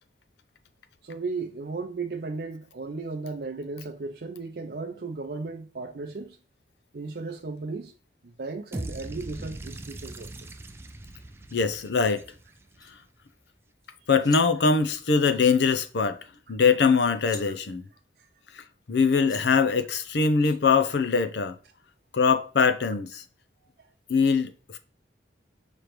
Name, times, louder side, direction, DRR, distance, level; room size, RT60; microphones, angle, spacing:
voice 1, 1.0-6.4 6.9-7.9 8.2-10.3 17.5-17.6 19.9-20.0 23.8-23.9, right 3 dB, 65° right, 0.5 m, -35 dB
sound 1, 8.7-12.8, right 1 dB, 15° right, 0.3 m, -40 dB
voice 2, 11.5-12.2 14.1-16.2 16.5-17.8 18.5-21.6 22.1-23.2 24.1-24.8, left 5 dB, 80° left, 0.6 m, -22 dB
sound 2, 12.6-12.9 13.8-13.9 14.1-14.5 16.3-16.4 16.8-17.5 18.8-18.9 19.2-19.4 20.4-20.6, left 4 dB, 25° left, 0.9 m, -44 dB
5.1 x 3.2 x 3.0 m
head